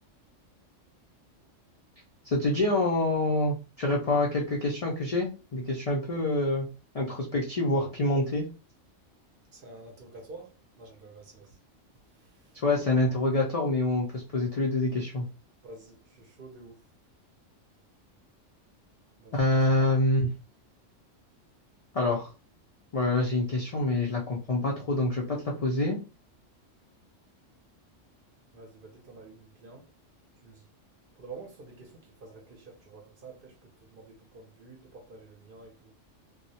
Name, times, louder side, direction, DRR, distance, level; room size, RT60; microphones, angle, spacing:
voice 1, 2.3-6.7 6.9-8.5 12.5-15.3 19.3-20.3 21.9-22.3 22.9-26.0, left 2 dB, 70° left, 0.3 m, -26 dB
voice 2, 9.5-11.6 12.1-12.6 15.6-16.8 19.2-19.4 28.5-29.9 30.4-30.7 31.2-35.9, right 3 dB, 55° right, 0.6 m, -49 dB
2.3 x 2.0 x 2.7 m
omnidirectional pair, 1.3 m